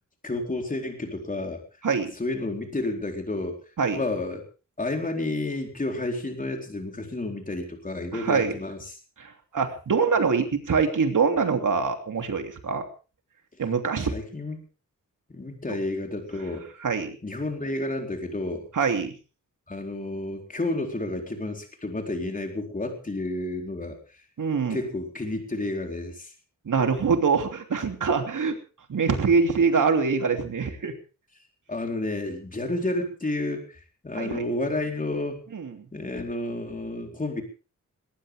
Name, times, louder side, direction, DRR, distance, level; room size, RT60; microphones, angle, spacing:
voice 1, 0.2-1.6 2.2-3.6 3.9-4.4 4.8-9.0 14.0-14.6 15.3-16.7 17.2-18.7 19.7-24.0 24.7-26.3 31.7-35.4 35.9-37.4, left 2 dB, 25° left, 3 dB, 4.2 m, -31 dB
voice 2, 8.1-8.5 9.2-12.8 13.6-14.1 15.7-15.8 16.8-17.2 18.7-19.1 24.4-24.8 26.6-28.6 28.9-30.9 34.1-34.4 35.5-35.7, right 5 dB, 75° right, 5 dB, 3.0 m, -24 dB
20.0 x 18.5 x 3.6 m, 0.36 s
wide cardioid pair, 160°, 32 cm